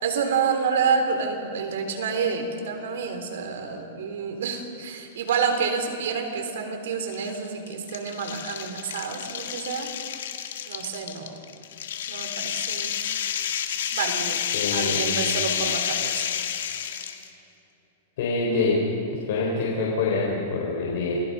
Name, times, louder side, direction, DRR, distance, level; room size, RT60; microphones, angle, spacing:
voice 1, 0.0-9.9 10.7-11.4 12.1-13.0 13.9-14.4 14.7-16.3, right 5 dB, 70° right, 5 dB, 3.6 m, -28 dB
sound 1, 5.2-5.6 6.0-6.1 7.1-17.3, left 9 dB, 75° left, 1.7 m, -29 dB
voice 2, 14.5-15.0 18.2-18.8 19.1-21.1, left 3 dB, 60° left, -3 dB, 4.3 m, -25 dB
28.5 x 19.0 x 5.5 m, 2.8 s
supercardioid pair, 165°, 0 cm